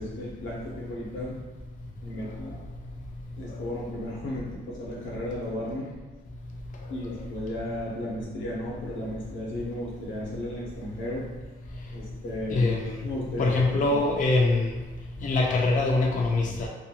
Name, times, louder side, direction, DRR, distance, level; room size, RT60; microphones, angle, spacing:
voice 1, 0.0-1.4 2.0-2.6 3.4-5.9 6.9-11.4 11.9-12.7 13.0-14.0, left 1 dB, 75° left, -4 dB, 1.0 m, -35 dB
voice 2, 12.5-13.0 13.4-14.8 15.2-16.7, left 2 dB, 40° left, -1 dB, 0.5 m, -23 dB
2.8 x 2.2 x 2.8 m, 1.3 s
cardioid pair, 90°, 20 cm